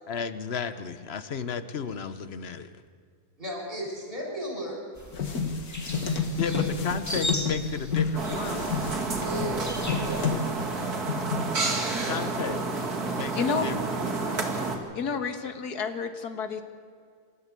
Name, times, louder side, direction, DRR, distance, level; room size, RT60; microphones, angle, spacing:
voice 1, 0.1-2.7 6.4-8.7 11.9-12.6 13.1-14.4, left 6 dB, 45° left, 12 dB, 1.2 m, -34 dB
voice 2, 3.4-4.8 6.3-6.7 9.0-10.4 11.9-12.2, equal, 35° right, -2 dB, 6.6 m, -35 dB
sound 1, 4.9-10.4, equal, 10° left, 1.8 m, -38 dB
sound 2, 5.1-8.1 8.4-10.7 11.1-11.4, left 5 dB, 70° left, 2.2 m, -29 dB
sound 3, 8.1-14.8, right 3 dB, 75° right, 2.9 m, -30 dB
voice 3, 13.3-13.7 14.9-16.6, left 5 dB, 90° left, 9 dB, 2.0 m, -30 dB
27.0 x 13.0 x 8.3 m, 2.2 s
omnidirectional pair, 1.6 m